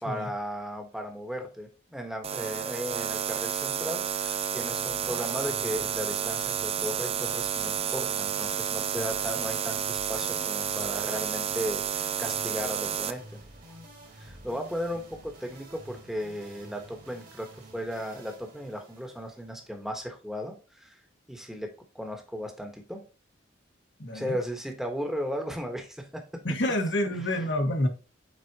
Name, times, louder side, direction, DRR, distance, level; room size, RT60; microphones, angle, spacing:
voice 1, 0.0-13.4 14.2-17.5 17.7-21.0 21.3-21.7 21.9-23.0 24.1-26.2 27.3-27.4, equal, ahead, 1.2 m, -36 dB
sound 1, 2.2-13.1, right 8 dB, 30° right, 0.4 m, -31 dB
sound 2, 4.6-20.0, right 1 dB, 50° right, 2.1 m, -50 dB
voice 2, 24.0-24.4 26.4-27.9, left 1 dB, 65° left, 1.5 m, -28 dB
8.0 x 4.1 x 2.8 m
head